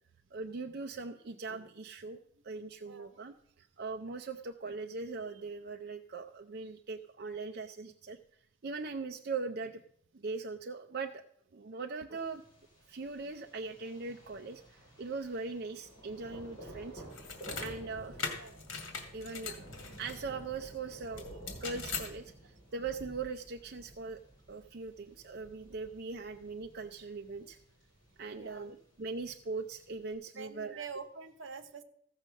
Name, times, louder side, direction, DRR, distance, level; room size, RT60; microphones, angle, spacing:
voice 1, 0.3-2.2 2.4-8.2 8.6-9.8 10.1-11.2 11.5-12.4 12.9-17.1 17.6-18.2 19.1-21.3 21.6-24.2 24.5-27.6 28.2-30.9, right 4 dB, 50° right, 5 dB, 0.5 m, -40 dB
Thunder, 12.2-30.1, right 1 dB, 20° left, 6.0 m, -52 dB
sound 1, 17.1-17.7 18.2-20.2 21.2-22.1, left 5 dB, 75° left, 2.2 m, -40 dB
voice 2, 18.2-18.6 28.4-28.7 30.3-31.8, right 5 dB, 70° right, 10 dB, 1.0 m, -46 dB
15.0 x 6.5 x 6.4 m, 0.70 s
head